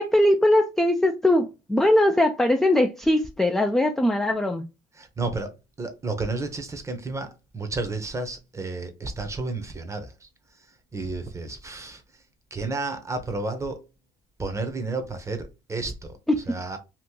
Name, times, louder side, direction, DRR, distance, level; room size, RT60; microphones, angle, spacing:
voice 1, 0.0-4.6 16.3-16.4, left 1 dB, ahead, 0.3 m, -21 dB
voice 2, 5.0-5.5 5.8-10.3 10.9-12.0 12.5-13.8 14.4-16.2 16.5-16.8, right 3 dB, 20° right, 0.7 m, -31 dB
2.9 x 2.5 x 3.6 m
cardioid pair, 125°, 17 cm